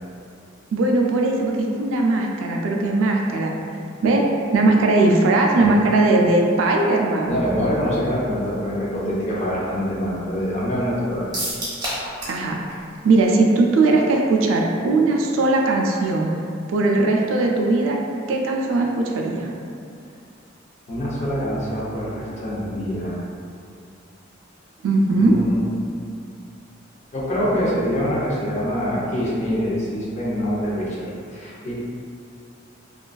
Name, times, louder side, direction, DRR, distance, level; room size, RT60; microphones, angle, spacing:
voice 1, 0.7-3.5 4.0-4.3 4.5-7.4 12.3-12.6 13.0-16.3 16.7-18.0 18.3-19.5 24.8-25.3, right 2 dB, 80° right, 1 dB, 0.3 m, -19 dB
voice 2, 7.3-11.3 20.9-23.2 25.1-25.6 27.1-31.8, equal, 35° left, -6 dB, 0.5 m, -25 dB
sound 1, 11.3-12.4 12.7-12.8 13.2-13.3, right 1 dB, 20° right, 0.8 m, -28 dB
2.4 x 2.3 x 2.2 m, 2.4 s
head